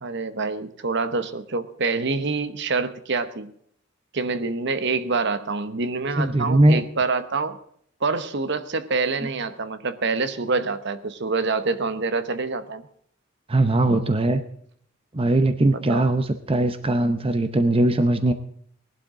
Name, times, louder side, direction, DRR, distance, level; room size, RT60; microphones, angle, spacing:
voice 1, 0.0-3.5 4.1-7.6 8.0-12.8 15.7-16.1, right 4 dB, 60° right, 12 dB, 1.0 m, -26 dB
voice 2, 6.2-6.8 13.5-14.4 15.1-18.3, right 1 dB, 25° right, 10 dB, 0.7 m, -20 dB
19.0 x 11.5 x 3.7 m, 0.64 s
head